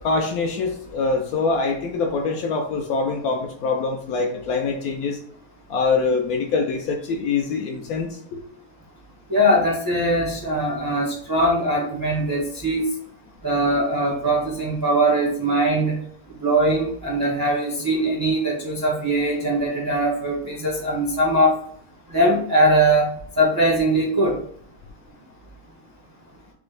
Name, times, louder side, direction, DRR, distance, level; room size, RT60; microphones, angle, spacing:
voice 1, 0.0-5.2 5.7-8.4, left 4 dB, 75° left, 2 dB, 1.1 m, -24 dB
voice 2, 9.3-12.9 13.4-16.0 16.4-21.5 22.1-24.4, right 1 dB, 30° right, -3 dB, 0.4 m, -21 dB
5.1 x 2.0 x 3.3 m, 0.63 s
omnidirectional pair, 1.7 m